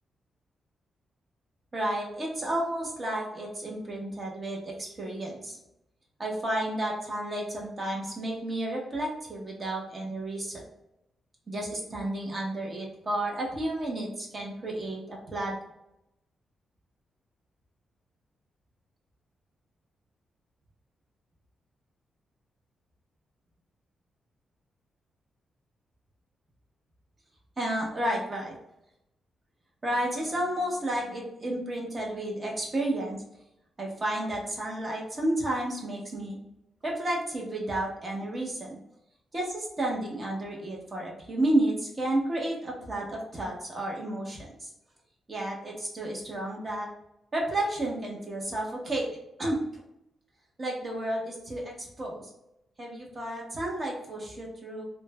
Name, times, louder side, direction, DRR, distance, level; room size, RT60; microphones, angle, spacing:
voice 1, 1.7-5.6 6.2-10.6 11.5-15.6 27.6-28.6 29.8-33.2 33.8-36.4 36.8-38.8 39.3-44.7 45.3-46.9 47.3-49.1 49.4-49.6 50.6-52.3 52.8-54.8, right 1 dB, 35° right, -2 dB, 0.8 m, -31 dB
3.0 x 2.1 x 2.2 m, 0.84 s
cardioid pair, 100°, 0 cm